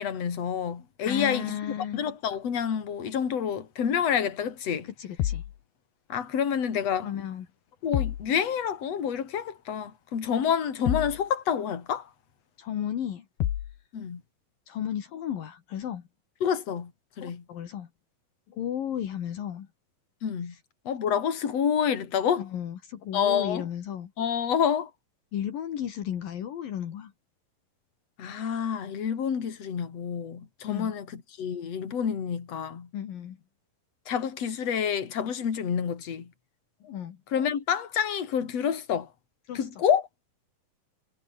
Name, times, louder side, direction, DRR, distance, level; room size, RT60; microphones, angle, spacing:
voice 1, 0.0-1.6 1.9-4.9 6.1-7.1 7.8-12.1 13.9-14.2 16.4-16.9 17.2-17.4 20.2-20.5 20.9-22.4 23.1-23.7 24.2-24.9 28.2-32.9 34.1-36.3 37.3-39.1 39.5-40.0, left 8 dB, 45° left, 3.9 m, -28 dB
voice 2, 1.0-2.0 5.0-5.4 7.0-7.5 12.6-13.3 14.7-16.0 17.2-17.9 18.5-19.7 20.5-20.6 22.4-24.1 25.3-27.1 30.7-30.9 32.9-33.4 36.8-37.2 39.5-39.7, left 10 dB, 70° left, 3.6 m, -34 dB
sound 1, 5.2-5.6 7.9-8.3 10.9-11.2 13.4-13.8, left 12 dB, 85° left, 3.5 m, -28 dB
omnidirectional pair, 4.3 m